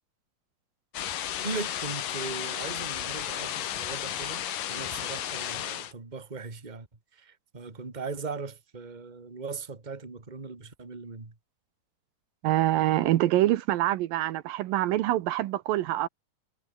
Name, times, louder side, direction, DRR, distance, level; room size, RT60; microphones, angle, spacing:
sound 1, 0.9-5.9, left 11 dB, 70° left, 3.3 m, -33 dB
voice 1, 1.4-4.4 4.7-6.9 7.1-11.3, right 4 dB, 15° right, 2.1 m, -39 dB
voice 2, 12.4-16.1, right 15 dB, 80° right, 2.7 m, -25 dB
omnidirectional pair, 4.0 m